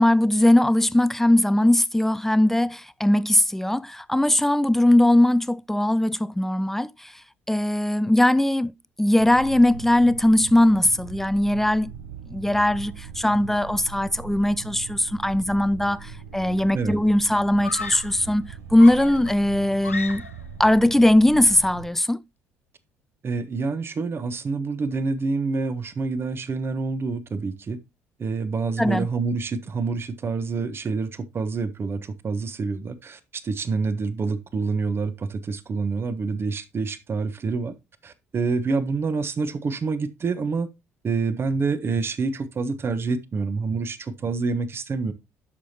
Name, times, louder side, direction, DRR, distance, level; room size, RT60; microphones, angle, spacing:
voice 1, 0.0-7.1 7.5-8.7 9.0-11.9 12.3-20.2 20.6-22.2 28.8-29.1, left 1 dB, 5° left, 0.4 m, -20 dB
sound 1, 9.2-21.9, right 7 dB, 70° right, 0.6 m, -40 dB
Screaming, 16.1-16.5 17.6-18.2 18.8-20.5, left 4 dB, 90° left, 0.4 m, -35 dB
voice 2, 23.2-27.8 28.2-37.7 38.0-40.7 41.0-45.1, right 4 dB, 35° right, 1.0 m, -27 dB
9.9 x 6.5 x 2.8 m
figure-of-eight pair, 50°, 7 cm